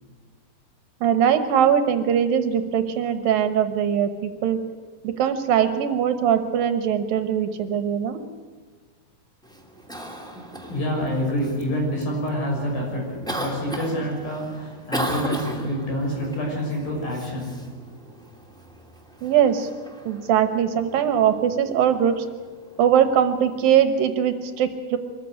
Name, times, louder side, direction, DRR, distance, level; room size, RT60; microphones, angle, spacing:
voice 1, 1.0-4.6 5.0-8.2 19.2-19.7 20.1-22.3 22.8-25.0, right 8 dB, 70° right, 9 dB, 2.7 m, -21 dB
Cough, 9.4-23.9, right 1 dB, ahead, 1.7 m, -37 dB
voice 2, 10.6-17.6, equal, 65° left, -1 dB, 8.2 m, -27 dB
23.5 x 14.5 x 9.8 m, 1.4 s
omnidirectional pair, 4.5 m